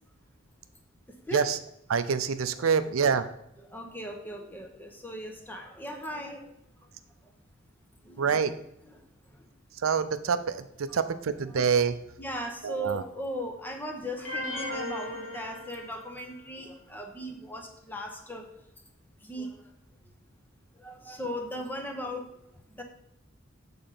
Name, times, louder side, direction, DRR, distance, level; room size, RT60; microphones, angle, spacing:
voice 1, 1.9-3.3 8.2-8.5 9.8-12.0 12.6-13.0, right 6 dB, 85° right, 11 dB, 0.5 m, -26 dB
voice 2, 2.6-2.9 3.7-6.6 8.0-8.5 9.3-9.4 12.2-18.5 19.2-19.7 20.7-22.3 22.8-22.9, equal, 10° left, 4 dB, 0.9 m, -38 dB
sound 1, 14.2-16.3, left 1 dB, 65° left, 2.4 m, -36 dB
6.8 x 3.9 x 5.6 m, 0.77 s
head